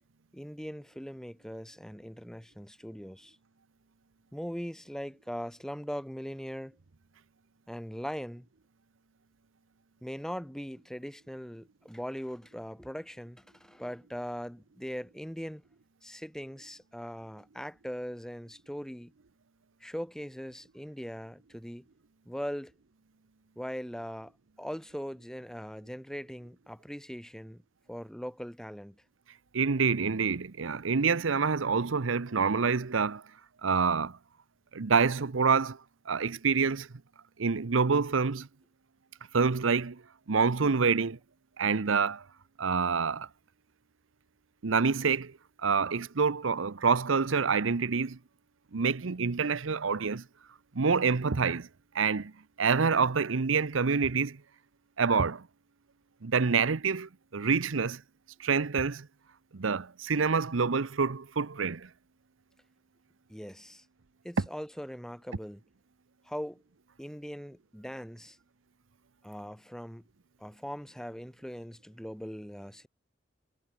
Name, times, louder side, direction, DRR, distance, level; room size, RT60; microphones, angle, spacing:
voice 1, 0.3-3.4 4.3-6.8 7.7-8.5 10.0-15.6 16.0-19.1 19.8-21.9 22.2-22.7 23.5-27.6 27.9-29.0 63.3-63.8 64.2-65.6 66.2-66.6 67.0-68.4 69.2-70.0 70.4-72.9, equal, 5° left, 1.4 m, -40 dB
voice 2, 29.5-33.2 33.6-34.2 34.7-35.8 36.1-36.9 37.4-38.5 39.3-40.0 40.3-41.2 41.6-42.2 42.6-43.3 44.6-45.3 45.6-48.2 48.7-50.2 50.7-51.7 51.9-52.3 52.6-54.4 55.0-55.5 56.2-58.0 58.4-59.1 59.5-61.9, right 5 dB, 90° right, 0.8 m, -27 dB
head